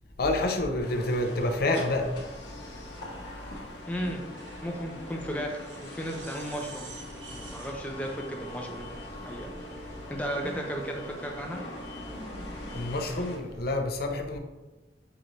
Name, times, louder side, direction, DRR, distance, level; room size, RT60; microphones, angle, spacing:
voice 1, 0.2-2.1 12.7-14.4, left 2 dB, 55° left, 4 dB, 0.5 m, -28 dB
sound 1, 0.8-13.4, left 1 dB, 75° left, 0.9 m, -42 dB
sound 2, 1.9-9.5, right 3 dB, 70° right, 0.8 m, -51 dB
voice 2, 3.9-4.2 4.6-6.9 7.3-9.5 10.1-11.6, equal, 10° left, 0 dB, 0.5 m, -35 dB
sound 3, 6.2-13.6, equal, 20° right, 1.0 m, -50 dB
5.8 x 3.1 x 2.6 m, 1.1 s
head